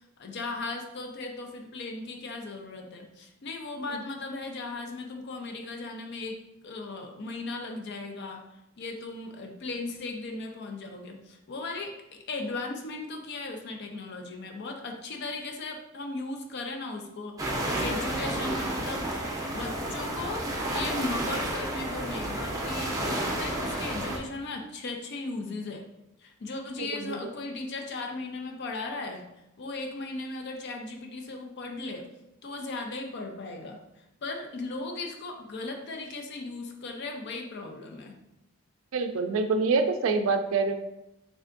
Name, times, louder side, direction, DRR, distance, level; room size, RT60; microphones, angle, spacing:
voice 1, 0.0-8.4 8.8-19.1 19.5-25.8 26.2-29.3 29.6-32.1 32.4-33.8 34.2-38.1, left 3 dB, 55° left, 3 dB, 0.4 m, -37 dB
sound 1, 17.4-24.2, right 1 dB, 15° right, 0.5 m, -31 dB
voice 2, 26.8-27.2 38.9-40.7, right 4 dB, 75° right, 7 dB, 0.3 m, -26 dB
3.6 x 3.3 x 2.5 m, 0.89 s
head